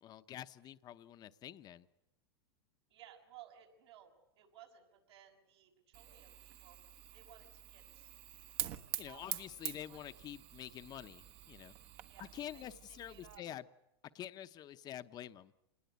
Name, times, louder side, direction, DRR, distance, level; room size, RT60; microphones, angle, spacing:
voice 1, 0.0-1.9 9.0-11.8 12.2-13.6 14.1-15.5, left 11 dB, 30° left, 11 dB, 0.9 m, -47 dB
voice 2, 2.9-6.8 7.1-8.1 9.0-9.4 9.7-10.2 12.1-13.4, right 11 dB, 80° right, 0 dB, 6.5 m, -59 dB
Fire, 5.9-13.4, right 12 dB, 45° right, 1.3 m, -46 dB
27.0 x 20.0 x 8.3 m, 0.88 s
hypercardioid pair, 125°, 14 cm